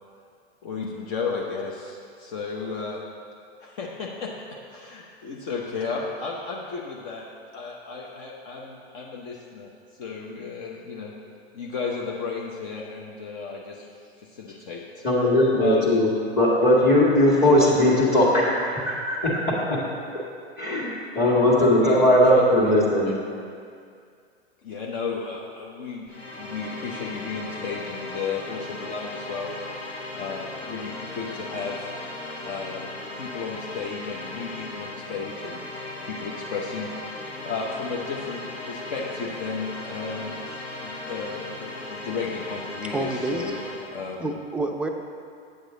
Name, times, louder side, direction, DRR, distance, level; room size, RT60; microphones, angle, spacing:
voice 1, 0.6-3.0 3.6-7.2 7.5-11.1 11.5-13.9 14.2-15.0 15.6-16.0 21.5-22.7 23.0-23.1 24.6-26.0 26.3-29.5 30.1-31.9 32.4-35.7 36.0-43.6 43.9-44.3, left 5 dB, 50° left, -2 dB, 1.0 m, -34 dB
voice 2, 15.0-16.1 16.3-19.8 20.6-20.9 21.2-23.1, left 1 dB, 30° left, -5 dB, 1.9 m, -19 dB
sound 1, 26.1-44.0, left 2 dB, 80° left, 1.4 m, -37 dB
voice 3, 42.9-43.6 44.2-44.9, right 2 dB, 5° right, 3 dB, 0.5 m, -28 dB
8.3 x 8.0 x 3.9 m, 2.3 s
figure-of-eight pair, 95°, 33 cm